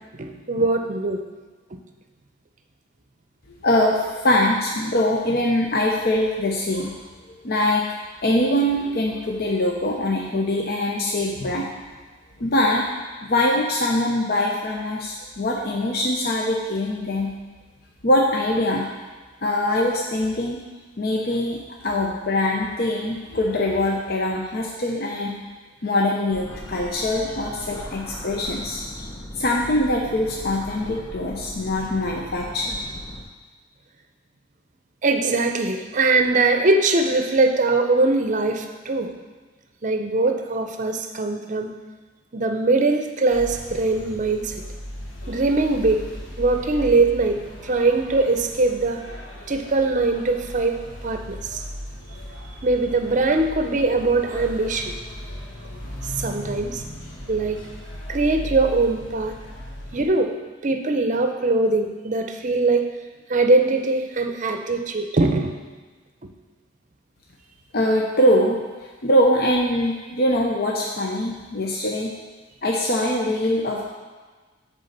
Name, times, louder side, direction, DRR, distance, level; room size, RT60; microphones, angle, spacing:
voice 1, 0.2-1.2 35.0-39.1 39.8-41.7 42.3-44.5 45.3-46.1 46.4-49.0 49.5-51.6 52.6-54.9 56.0-56.8 57.3-57.6 58.1-59.4 59.9-60.3 60.6-62.9 63.3-65.5, right 3 dB, 40° right, 6 dB, 0.6 m, -21 dB
voice 2, 3.6-7.0 7.4-7.9 8.2-11.7 12.4-12.9 13.2-17.3 18.0-18.9 19.4-20.6 21.0-21.6 21.8-25.3 25.8-29.0 29.4-32.8 67.7-68.6 69.0-72.1 72.6-73.8, left 1 dB, 55° left, -1 dB, 0.7 m, -22 dB
sound 1, 26.3-33.2, left 1 dB, 20° left, 0.9 m, -38 dB
sound 2, 43.3-60.1, equal, 90° left, 1.4 m, -37 dB
8.1 x 3.8 x 6.6 m, 1.4 s
head